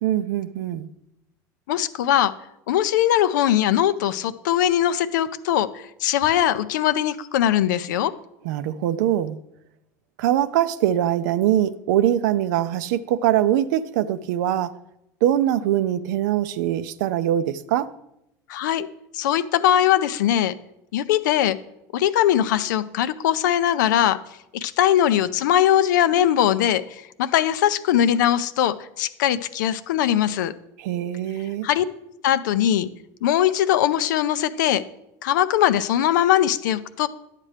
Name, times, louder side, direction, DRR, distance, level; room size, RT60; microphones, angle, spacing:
voice 1, 0.0-0.9 8.4-9.4 10.2-14.8 15.2-17.9 30.8-31.7, right 11 dB, 75° right, 0.5 m, -22 dB
voice 2, 1.7-2.3 2.7-8.1 18.5-18.9 19.1-20.5 20.9-21.6 21.9-24.2 24.5-30.5 31.6-31.8 32.2-32.9 33.2-34.8 35.2-37.1, left 11 dB, 85° left, 0.5 m, -21 dB
10.5 x 7.4 x 3.3 m
hypercardioid pair, 90°, 10 cm